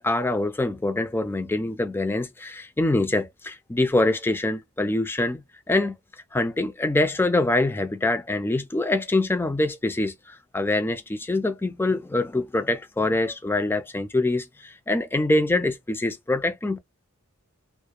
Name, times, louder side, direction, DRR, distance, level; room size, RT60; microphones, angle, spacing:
voice 1, 0.0-5.4 5.7-6.0 6.3-16.8, left 2 dB, 10° left, 0.3 m, -24 dB
2.3 x 2.0 x 2.8 m
head